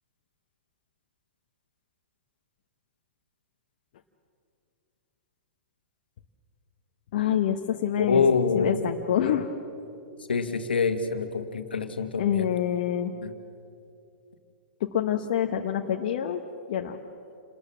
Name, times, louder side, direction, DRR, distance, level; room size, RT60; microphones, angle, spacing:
voice 1, 7.1-8.2 8.5-9.5 12.2-13.1 14.9-16.4 16.7-17.0, left 10 dB, 55° left, 3 dB, 1.2 m, -26 dB
voice 2, 8.0-8.8 10.3-12.5 13.2-13.3, left 5 dB, 75° left, 8 dB, 1.9 m, -25 dB
28.5 x 20.5 x 7.5 m, 2.6 s
figure-of-eight pair, 110°, 5 cm